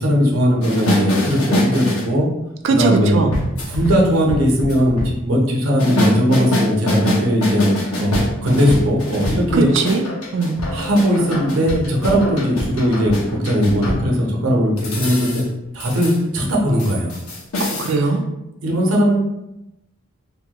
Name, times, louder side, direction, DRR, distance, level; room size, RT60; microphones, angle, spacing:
voice 1, 0.0-2.3 2.8-3.2 3.7-7.7 8.0-9.7 10.7-15.4 15.7-17.2 18.6-19.2, equal, 80° right, -1 dB, 0.8 m, -18 dB
sound 1, 0.6-2.1 3.3-5.1 5.8-14.1 14.8-15.4 15.8-16.2 16.4-16.5 16.8-17.9, left 1 dB, 90° left, 0.7 m, -24 dB
voice 2, 2.6-3.3 9.5-10.0 10.3-10.6 17.6-18.2, right 3 dB, 60° right, 3 dB, 0.3 m, -19 dB
3.6 x 2.2 x 2.8 m, 0.90 s
head